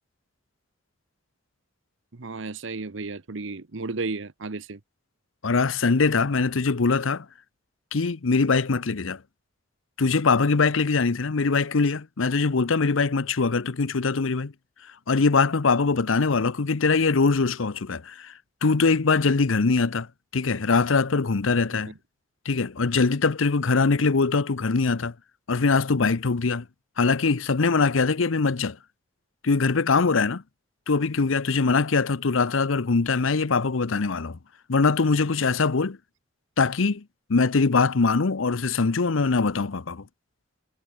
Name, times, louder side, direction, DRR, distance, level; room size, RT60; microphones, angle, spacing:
voice 1, 2.1-4.8 21.9-22.0, right 3 dB, 70° right, 0.9 m, -33 dB
voice 2, 5.4-7.3 7.9-9.2 10.0-14.5 15.1-18.3 18.6-20.1 20.3-21.9 22.4-25.1 25.5-26.6 27.0-28.8 29.4-30.4 30.9-34.4 34.7-36.0 36.6-37.0 37.3-40.0, left 4 dB, 85° left, 0.8 m, -22 dB
head